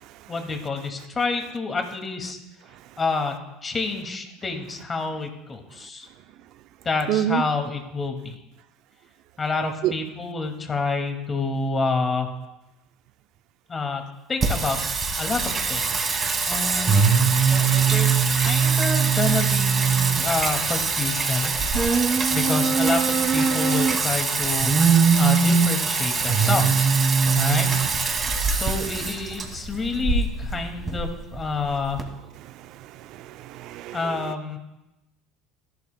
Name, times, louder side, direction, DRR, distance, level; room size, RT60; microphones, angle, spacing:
voice 1, 0.3-2.4 3.0-3.3 3.6-6.1 6.8-8.4 9.4-12.3 13.7-14.0 14.3-14.8 15.2-21.6 22.3-24.7 25.2-26.9 27.3-27.7 28.5-32.0 33.9-34.6, left 3 dB, 30° left, 4 dB, 2.1 m, -28 dB
voice 2, 7.1-7.4 9.8-9.9 32.4-34.3, right 12 dB, 60° right, 12 dB, 0.5 m, -28 dB
Singing, 14.4-32.0, right 5 dB, 30° right, 2.2 m, -22 dB
13.5 x 11.5 x 2.2 m, 0.95 s
hypercardioid pair, 85°, 0 cm